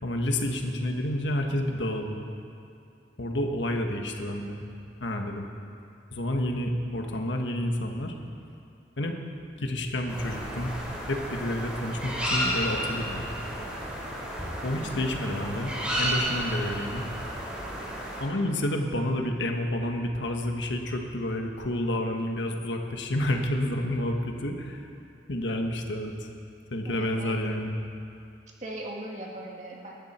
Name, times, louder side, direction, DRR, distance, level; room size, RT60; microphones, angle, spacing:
voice 1, 0.0-2.2 3.2-4.6 5.0-5.5 6.1-8.1 9.0-9.2 9.6-10.7 11.1-13.3 14.6-17.0 18.2-24.9 25.3-26.3 26.7-27.7, left 1 dB, 85° left, 3 dB, 1.5 m, -29 dB
sound 1, 10.1-18.2, equal, 5° right, 3.7 m, -32 dB
voice 2, 26.9-27.4 28.6-29.9, right 1 dB, 40° right, -1 dB, 1.9 m, -39 dB
20.0 x 13.5 x 4.4 m, 2.6 s
head